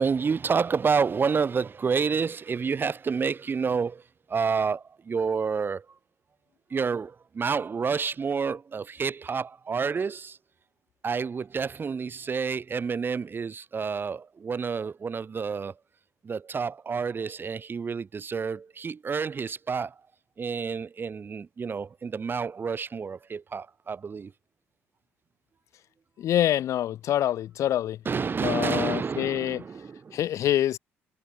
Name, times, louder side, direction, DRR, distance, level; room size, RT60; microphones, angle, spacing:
voice 1, 0.0-4.0 4.3-5.9 6.7-10.4 11.0-15.8 16.2-20.0 20.4-24.3 28.1-30.2, right 5 dB, 40° right, 3.5 m, -29 dB
voice 2, 26.2-28.0 28.4-29.6 30.1-30.8, left 12 dB, 70° left, 3.3 m, -26 dB
supercardioid pair, 70°, 6 cm